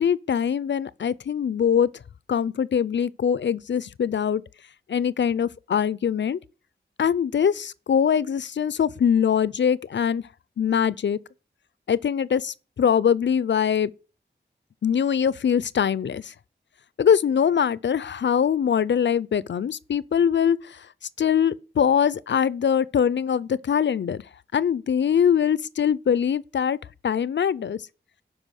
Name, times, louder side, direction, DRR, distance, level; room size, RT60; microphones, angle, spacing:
voice 1, 0.0-1.9 2.3-4.4 4.9-6.4 7.0-10.2 10.6-11.2 11.9-13.9 14.8-16.3 17.0-20.9 21.2-24.2 24.5-26.8 27.0-27.8, left 8 dB, 70° left, 0.5 m, -22 dB
11.5 x 4.8 x 6.4 m
wide cardioid pair, 65°, 19 cm